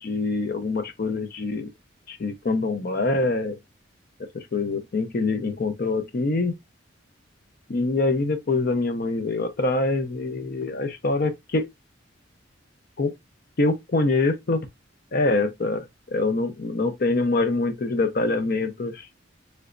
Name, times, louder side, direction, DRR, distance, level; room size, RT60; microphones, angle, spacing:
voice 1, 0.0-1.7 2.1-3.6 4.3-6.5 7.7-11.7 13.0-13.1 13.6-14.6 15.1-19.1, left 3 dB, 50° left, 0.6 m, -25 dB
3.3 x 3.0 x 2.4 m
head